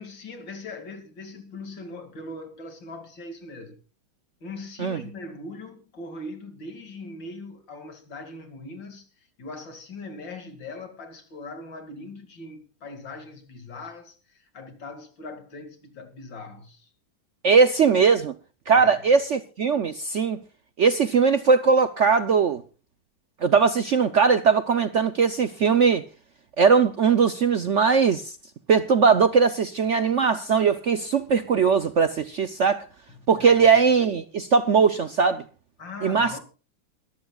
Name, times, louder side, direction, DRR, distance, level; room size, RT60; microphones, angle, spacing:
voice 1, 0.0-3.8 4.4-16.9 18.7-19.0 33.1-33.7 35.8-36.4, left 2 dB, 65° left, 3.0 m, -40 dB
voice 2, 17.4-18.3 18.7-20.4 20.8-22.6 23.4-26.0 26.6-28.3 28.7-32.8 33.3-35.4 36.0-36.4, right 5 dB, 75° right, 0.6 m, -20 dB
21.5 x 14.5 x 2.3 m
omnidirectional pair, 2.2 m